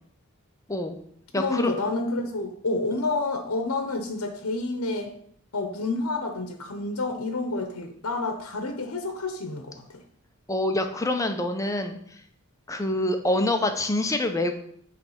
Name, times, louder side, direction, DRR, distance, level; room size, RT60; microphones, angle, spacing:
voice 1, 0.7-1.0 1.3-1.7 10.5-12.2 12.7-14.5, left 1 dB, 15° left, 6 dB, 0.6 m, -26 dB
voice 2, 1.4-5.1 5.5-10.0, left 2 dB, 75° left, 5 dB, 0.9 m, -29 dB
8.8 x 3.4 x 5.6 m, 0.65 s
head